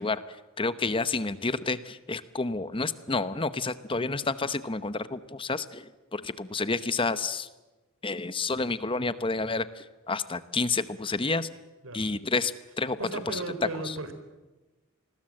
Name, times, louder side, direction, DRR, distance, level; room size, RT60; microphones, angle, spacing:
voice 1, 0.0-7.5 8.0-11.5 11.9-13.0 13.3-13.4 13.8-13.9, left 3 dB, 25° left, 13 dB, 0.9 m, -30 dB
voice 2, 13.0-14.1, right 2 dB, 80° right, 9 dB, 4.2 m, -35 dB
28.0 x 21.0 x 7.7 m, 1.1 s
head